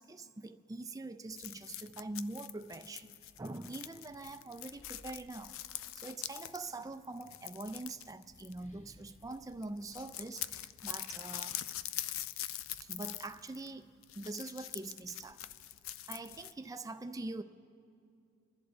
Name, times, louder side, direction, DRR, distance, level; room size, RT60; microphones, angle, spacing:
voice 1, 0.0-3.1 3.4-5.5 5.9-11.6 12.8-15.5 16.1-17.4, right 2 dB, 15° right, 0.4 m, -44 dB
sound 1, 1.3-8.9 9.2-9.4 9.6-16.5, left 13 dB, 70° left, 0.4 m, -44 dB
sound 2, 4.3-6.4 7.3-11.0, equal, 35° left, 1.2 m, -64 dB
27.5 x 11.0 x 3.9 m
head